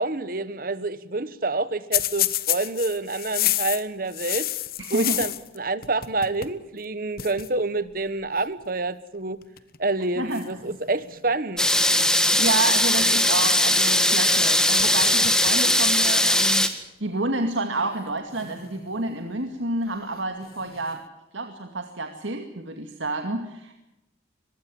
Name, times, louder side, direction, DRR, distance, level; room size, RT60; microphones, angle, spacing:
voice 1, 0.0-4.5 4.9-9.4 9.8-11.7, right 2 dB, 50° right, 15 dB, 1.3 m, -28 dB
sound 1, 1.9-5.6 5.8-6.6 6.8-6.9 7.2-7.5 8.4-8.6 9.4-9.8 10.3-11.4 14.3-14.5 14.8-15.6 16.0-16.1 17.1-17.2 18.3-19.2 20.4-21.0, left 14 dB, 50° left, 1.2 m, -30 dB
voice 2, 4.8-5.2 10.2-10.4 12.2-16.7 17.0-21.0 21.3-23.7, right 2 dB, 90° right, 5 dB, 2.3 m, -29 dB
sound 2, 11.6-16.7, left 1 dB, 5° left, 1.8 m, -20 dB
23.5 x 21.5 x 7.1 m, 0.88 s
head